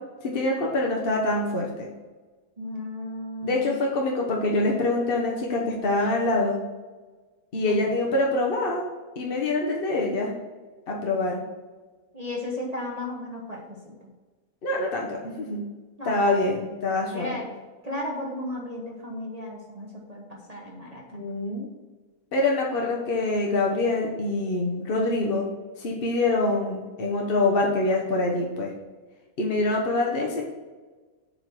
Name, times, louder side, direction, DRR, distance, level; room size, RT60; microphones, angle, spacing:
voice 1, 0.2-1.9 3.4-6.6 7.5-8.9 9.2-10.3 10.9-11.4 14.6-15.6 16.0-17.4 21.1-21.7 22.3-25.5 25.8-28.7 29.4-30.4, left 2 dB, 40° left, -1 dB, 1.0 m, -25 dB
voice 2, 2.6-3.8 7.7-8.0 12.1-13.9 16.0-16.5 17.1-17.5 17.8-21.0, left 1 dB, 30° right, -2 dB, 1.0 m, -35 dB
7.5 x 4.1 x 5.9 m, 1.3 s
omnidirectional pair, 1.7 m